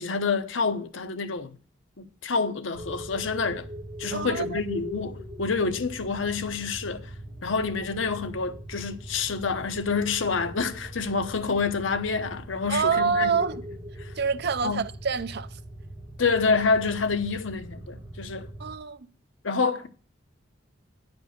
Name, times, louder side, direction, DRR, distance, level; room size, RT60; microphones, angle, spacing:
voice 1, 0.0-1.6 2.0-3.7 4.0-7.1 7.4-13.4 14.0-14.1 14.6-14.8 16.2-18.5 19.4-19.9, left 4 dB, 75° left, 0.9 m, -27 dB
sound 1, 2.7-18.8, equal, 20° right, 1.5 m, -41 dB
voice 2, 4.1-4.6 12.7-13.6 14.2-15.6 18.6-19.1, right 5 dB, 55° right, 0.5 m, -27 dB
10.0 x 5.3 x 6.6 m
head